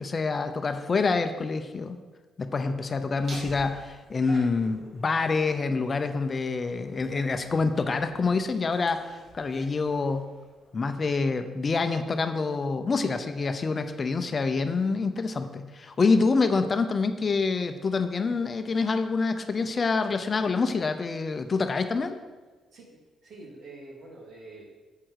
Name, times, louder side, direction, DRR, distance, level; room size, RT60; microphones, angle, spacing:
voice 1, 0.0-2.0 2.4-10.3 10.7-22.2, left 4 dB, 35° left, 8 dB, 0.7 m, -26 dB
Laughter, 3.1-10.8, right 1 dB, 50° right, 2.6 m, -49 dB
voice 2, 23.2-24.7, right 2 dB, 65° right, -2 dB, 2.8 m, -45 dB
8.7 x 7.6 x 4.7 m, 1.3 s
cardioid pair, 90°, 0 cm